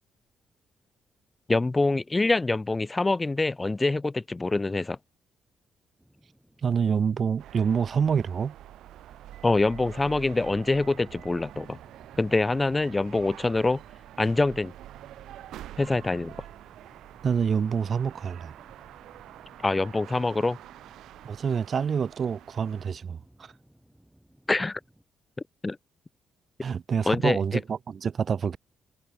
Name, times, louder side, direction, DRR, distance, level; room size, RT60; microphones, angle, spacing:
voice 1, 1.5-5.0 9.4-11.8 12.2-13.8 14.2-14.7 15.8-16.4 19.6-20.6 24.5-24.8 25.6-25.8 27.1-27.4, left 2 dB, 20° left, 0.9 m, -25 dB
sound 1, 6.0-25.0, right 1 dB, 5° right, 7.0 m, -59 dB
voice 2, 6.6-8.6 17.2-18.5 21.2-23.5 26.6-28.6, right 6 dB, 45° right, 0.5 m, -27 dB
sound 2, 7.4-22.9, right 13 dB, 80° right, 1.0 m, -47 dB
cardioid pair, 90°, 0 cm